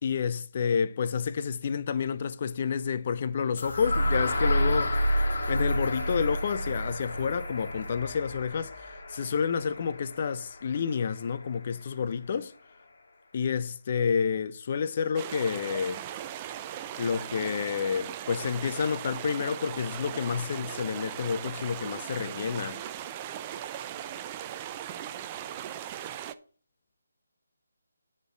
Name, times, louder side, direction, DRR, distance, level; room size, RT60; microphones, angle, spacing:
voice 1, 0.0-5.0 5.5-12.5 13.3-16.0 17.0-22.8, left 6 dB, 40° left, 0.6 m, -29 dB
sound 1, 3.6-11.5, equal, 55° left, 1.8 m, -30 dB
sound 2, 15.1-26.3, right 11 dB, 20° right, 0.5 m, -38 dB
8.0 x 4.5 x 7.0 m
figure-of-eight pair, 150°, 0 cm